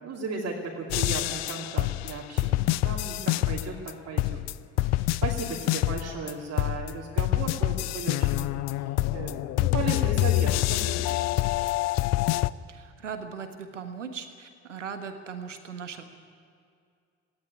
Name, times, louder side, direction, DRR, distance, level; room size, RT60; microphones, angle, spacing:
voice 1, 0.0-4.4 4.8-8.5 8.8-11.4, right 3 dB, 40° right, -4 dB, 2.9 m, -36 dB
sound 1, 0.9-3.9 4.2-6.3 6.6-12.5, left 16 dB, 45° left, 0.6 m, -26 dB
voice 2, 12.7-16.0, right 6 dB, 80° right, 8 dB, 1.4 m, -38 dB
18.0 x 16.0 x 10.0 m, 2.3 s
figure-of-eight pair, 50°, 36 cm